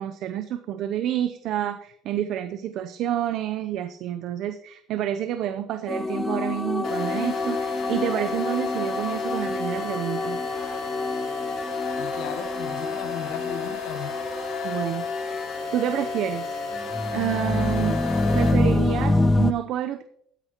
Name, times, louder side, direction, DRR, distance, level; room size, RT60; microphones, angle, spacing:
voice 1, 0.0-10.4 14.6-16.6 17.1-18.0 18.3-20.0, right 11 dB, 60° right, 9 dB, 0.6 m, -29 dB
sound 1, 5.9-15.7 16.0-19.5, left 2 dB, 15° left, 0.5 m, -27 dB
sound 2, 6.8-18.5, left 4 dB, 55° left, 3.6 m, -32 dB
voice 2, 12.0-14.2, left 9 dB, 75° left, 11 dB, 0.9 m, -37 dB
13.5 x 10.0 x 3.0 m, 0.66 s
cardioid pair, 130°, 0 cm